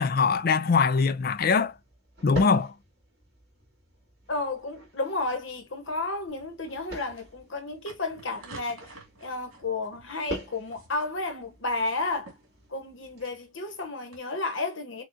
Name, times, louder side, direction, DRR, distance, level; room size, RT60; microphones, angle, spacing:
voice 1, 0.0-1.7 2.2-2.7, left 5 dB, 45° left, 0.4 m, -22 dB
sound 1, 0.9-13.3, right 1 dB, 50° right, 2.8 m, -45 dB
voice 2, 4.3-8.9 9.2-12.3 12.7-15.0, left 3 dB, 60° left, 1.1 m, -32 dB
sound 2, 6.3-14.2, right 2 dB, 70° right, 2.1 m, -52 dB
6.1 x 2.4 x 2.6 m
head